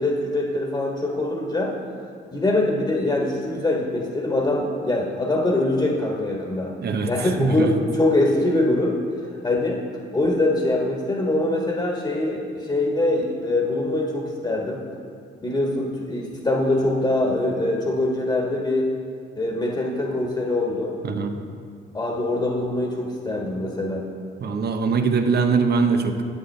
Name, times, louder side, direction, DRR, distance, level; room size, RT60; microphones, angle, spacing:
voice 1, 0.0-1.7 2.3-6.7 7.1-8.9 9.4-9.8 10.1-14.8 15.4-18.9 19.3-20.9 21.9-24.0, left 2 dB, 20° left, -1 dB, 1.4 m, -23 dB
voice 2, 6.8-7.7 21.0-21.4 24.4-26.2, right 4 dB, 55° right, 6 dB, 0.8 m, -22 dB
10.5 x 8.1 x 3.3 m, 2.3 s
cardioid pair, 90°, 20 cm